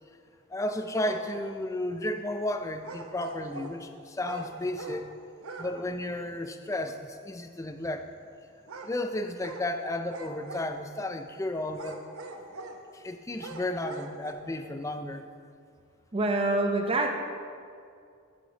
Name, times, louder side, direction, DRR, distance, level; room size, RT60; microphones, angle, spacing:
voice 1, 0.5-5.1 5.6-8.0 8.8-12.0 12.9-15.3, left 1 dB, 15° left, 7 dB, 0.3 m, -33 dB
sound 1, 1.0-1.3 2.8-3.8 4.2-5.0 5.4-5.7 6.0-6.1 8.7-8.9 9.4-9.7 10.1-11.0 11.7-12.8 13.3-14.3, right 3 dB, 80° right, 0.7 m, -42 dB
voice 2, 16.1-17.1, right 2 dB, 25° right, 3 dB, 0.6 m, -25 dB
11.5 x 5.1 x 3.9 m, 2.3 s
head